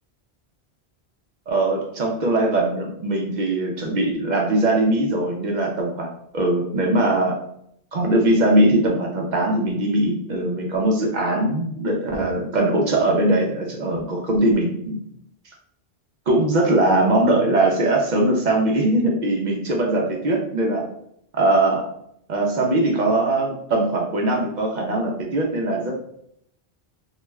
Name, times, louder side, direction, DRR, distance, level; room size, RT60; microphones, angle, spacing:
voice 1, 1.5-7.4 7.9-15.0 16.3-20.9 21.3-21.9 22.3-25.9, right 1 dB, 55° right, 0 dB, 0.5 m, -21 dB
2.3 x 2.2 x 3.0 m, 0.72 s
omnidirectional pair, 1.1 m